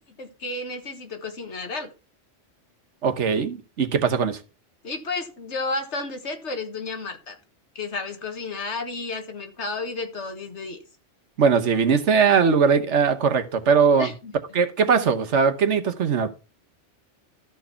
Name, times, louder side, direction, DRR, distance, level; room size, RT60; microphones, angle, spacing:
voice 1, 0.2-1.9 4.8-7.4 7.8-10.8 14.0-14.3, left 3 dB, 70° left, 6 dB, 1.9 m, -32 dB
voice 2, 3.0-4.4 11.4-14.1 14.5-16.3, right 6 dB, 75° right, 10 dB, 1.3 m, -20 dB
13.0 x 4.6 x 5.7 m, 0.33 s
omnidirectional pair, 1.2 m